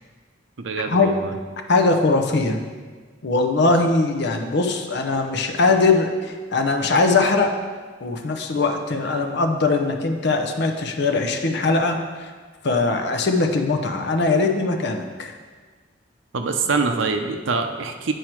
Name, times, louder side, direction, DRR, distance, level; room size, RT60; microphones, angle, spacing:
voice 1, 0.6-1.3 16.3-18.1, right 4 dB, 90° right, 6 dB, 0.7 m, -24 dB
voice 2, 1.7-2.6 3.2-7.6 8.0-12.3 12.6-15.3, left 3 dB, 60° left, 5 dB, 0.7 m, -21 dB
9.1 x 4.7 x 4.6 m, 1.5 s
head